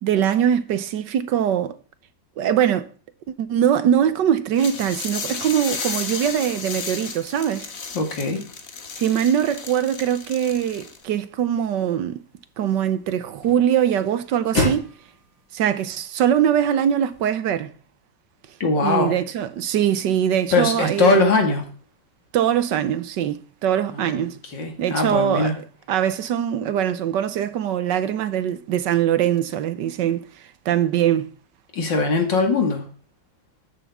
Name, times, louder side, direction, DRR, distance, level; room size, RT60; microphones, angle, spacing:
voice 1, 0.0-1.8 2.4-2.9 3.3-7.7 9.0-12.2 12.6-14.9 15.5-17.7 18.8-21.2 22.3-24.4 24.8-31.3, right 9 dB, 70° right, 1.3 m, -22 dB
sound 1, 4.5-11.0, left 5 dB, 45° left, 1.8 m, -33 dB
voice 2, 7.9-8.4 18.6-19.1 20.5-21.6 23.9-24.2 24.5-25.5 31.7-32.8, left 3 dB, 65° left, 2.7 m, -21 dB
sound 2, 11.0-17.2, left 2 dB, 80° left, 5.4 m, -33 dB
13.0 x 11.5 x 3.6 m
omnidirectional pair, 2.1 m